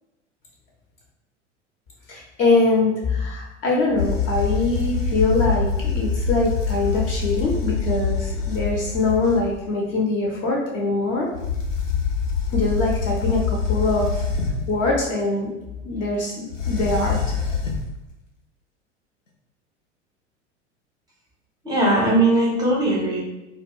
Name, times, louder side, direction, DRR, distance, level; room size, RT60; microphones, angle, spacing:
voice 1, 2.1-11.3 12.5-14.3 14.7-15.5 15.8-17.2, left 2 dB, 30° left, -2 dB, 0.5 m, -23 dB
sound 1, 4.0-9.6 11.3-14.8 16.5-17.9, left 5 dB, 85° left, 0.6 m, -25 dB
voice 2, 21.6-23.2, right 2 dB, 10° right, -4 dB, 0.6 m, -19 dB
2.2 x 2.0 x 3.5 m, 0.98 s
figure-of-eight pair, 80°, 37 cm